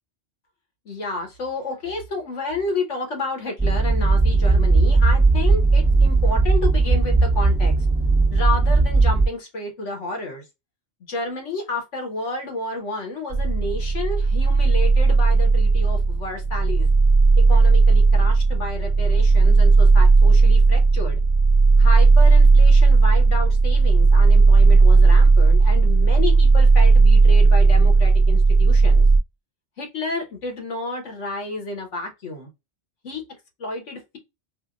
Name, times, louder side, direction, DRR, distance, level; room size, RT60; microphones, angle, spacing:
voice 1, 0.8-7.7 8.3-10.4 11.1-16.9 17.5-21.2 21.8-29.1 29.8-32.5 33.0-33.2 33.6-34.2, left 2 dB, 85° left, 1.5 m, -30 dB
sound 1, 3.6-9.3, right 3 dB, ahead, 0.8 m, -17 dB
sound 2, 13.3-29.2, right 3 dB, 35° right, 0.7 m, -15 dB
4.9 x 2.2 x 2.5 m
omnidirectional pair, 1.2 m